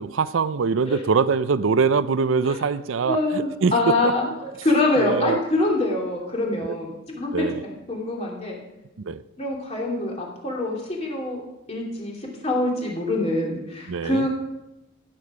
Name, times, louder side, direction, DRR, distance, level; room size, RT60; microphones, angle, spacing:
voice 1, 0.0-3.7 4.0-4.1 5.0-5.4 6.6-6.7 7.3-7.6 9.1-9.2 13.9-14.3, right 5 dB, 85° right, 15 dB, 0.5 m, -23 dB
voice 2, 3.0-6.9 7.2-8.6 9.4-11.4 11.7-14.3, left 2 dB, 30° left, -2 dB, 2.7 m, -25 dB
16.0 x 7.6 x 4.9 m, 0.92 s
head